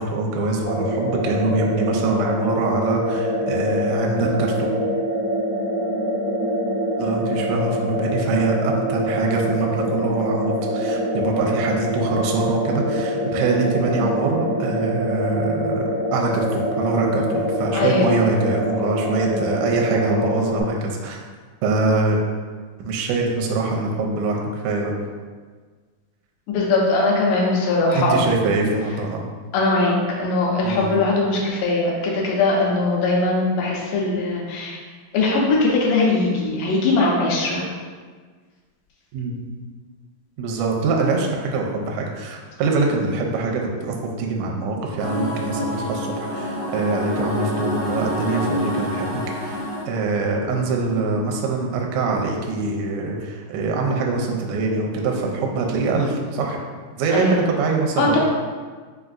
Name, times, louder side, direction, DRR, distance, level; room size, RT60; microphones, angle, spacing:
voice 1, 0.0-4.7 7.0-21.2 21.6-22.2 22.8-24.9 27.9-29.2 30.6-30.9 39.1-39.4 40.4-56.6 57.0-58.2, right 3 dB, 80° right, 0 dB, 1.7 m, -24 dB
sound 1, 0.6-20.6, equal, 55° left, 0.7 m, -25 dB
voice 2, 17.7-18.1 26.5-28.3 29.5-34.8 35.1-37.7 57.1-57.4 58.0-58.2, left 2 dB, 85° left, -2 dB, 2.2 m, -20 dB
sound 2, 45.0-49.8, equal, 60° right, 0.5 m, -27 dB
5.6 x 2.5 x 2.4 m, 1.5 s
omnidirectional pair, 3.8 m